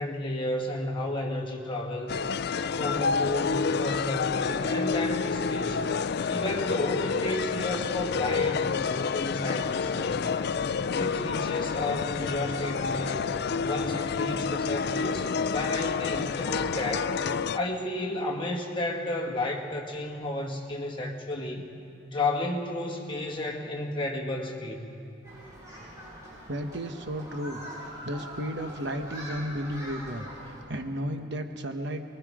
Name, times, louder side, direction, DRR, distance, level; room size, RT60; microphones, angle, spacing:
voice 1, 0.0-2.2 2.7-5.9 6.3-10.4 11.0-13.3 13.6-17.2 17.5-21.7 22.1-24.8, left 2 dB, 25° left, -1 dB, 1.9 m, -32 dB
sound 1, 2.1-17.6, left 5 dB, 55° left, 0.4 m, -29 dB
Human group actions, 25.2-30.6, equal, 15° right, 7.1 m, -43 dB
voice 2, 26.5-27.6 28.0-32.1, equal, 60° right, 6 dB, 1.2 m, -33 dB
24.0 x 22.0 x 5.0 m, 2.6 s
head